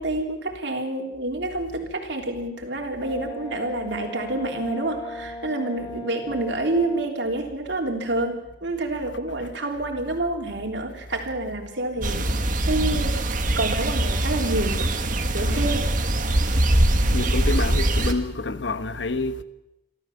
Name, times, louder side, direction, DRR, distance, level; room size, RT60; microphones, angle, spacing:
voice 1, 0.0-12.3 12.7-13.2 13.6-14.9 15.3-15.9, right 2 dB, 75° right, 3.5 m, -28 dB
Brass instrument, 3.0-7.1, left 2 dB, 25° left, 2.0 m, -37 dB
voice 2, 12.0-12.3 15.4-15.8 16.6-19.4, left 3 dB, 80° left, 1.1 m, -29 dB
sound 1, 12.0-18.1, right 1 dB, 45° right, 1.7 m, -22 dB
27.0 x 13.5 x 7.2 m
head